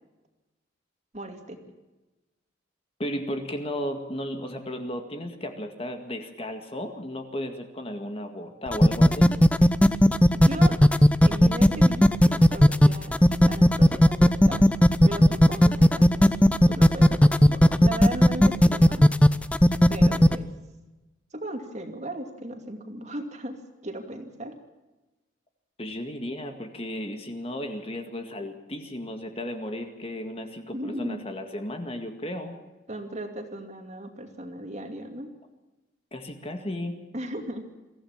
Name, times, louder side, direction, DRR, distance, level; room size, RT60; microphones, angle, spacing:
voice 1, 1.1-1.6 10.3-10.8 11.2-14.7 15.0-19.1 19.9-20.5 21.3-24.6 30.7-31.2 32.9-35.3 37.1-37.6, right 1 dB, 35° right, 5 dB, 2.5 m, -37 dB
voice 2, 3.0-9.3 25.8-32.6 36.1-37.0, left 1 dB, 30° left, 5 dB, 2.0 m, -34 dB
sound 1, 8.7-20.4, equal, 5° left, 0.6 m, -16 dB
23.5 x 15.5 x 7.3 m, 1.1 s
head